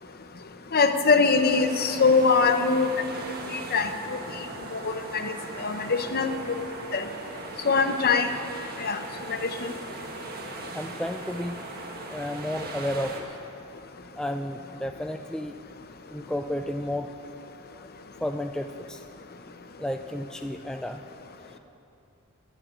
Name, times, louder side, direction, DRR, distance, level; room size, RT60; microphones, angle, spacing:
voice 1, 0.7-2.9 3.5-4.2 4.7-5.3 5.6-6.6 6.9-7.1 7.6-8.3 8.8-9.0 9.3-9.7, left 4 dB, 45° left, 8 dB, 0.8 m, -23 dB
sound 1, 1.3-13.2, right 2 dB, 45° right, 1.5 m, -39 dB
voice 2, 10.7-11.6 12.1-13.1 14.2-15.5 16.1-17.1 18.2-19.0 19.8-21.0, left 1 dB, 5° left, 5 dB, 0.3 m, -32 dB
12.0 x 11.0 x 8.0 m, 2.8 s
head